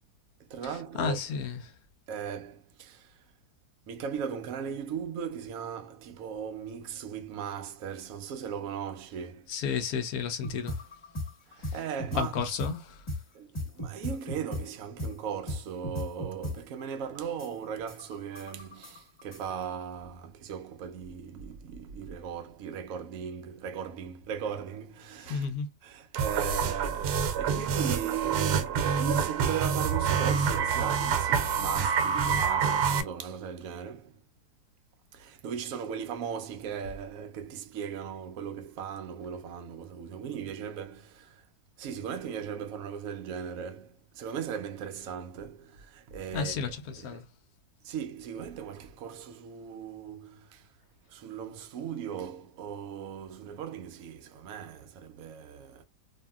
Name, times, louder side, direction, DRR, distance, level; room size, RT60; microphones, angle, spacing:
voice 1, 0.4-1.2 2.1-3.2 3.9-9.5 11.5-12.3 13.3-25.5 25.8-34.2 35.1-41.4 41.8-47.2 47.8-50.7 51.1-55.8, right 8 dB, 70° right, 0.9 m, -38 dB
voice 2, 0.9-1.6 9.5-10.8 11.6-11.7 12.2-13.0 25.3-25.7 46.3-47.2, left 6 dB, 70° left, 1.0 m, -32 dB
sound 1, 10.4-12.7 13.1-13.2 13.5-14.6 15.0-15.1 15.5-15.6 15.8-16.5 16.9-17.0 17.4-19.4, equal, 20° left, 1.3 m, -35 dB
sound 2, 26.2-33.0, right 6 dB, 85° right, 1.2 m, -27 dB
2.7 x 2.7 x 2.2 m
omnidirectional pair, 1.7 m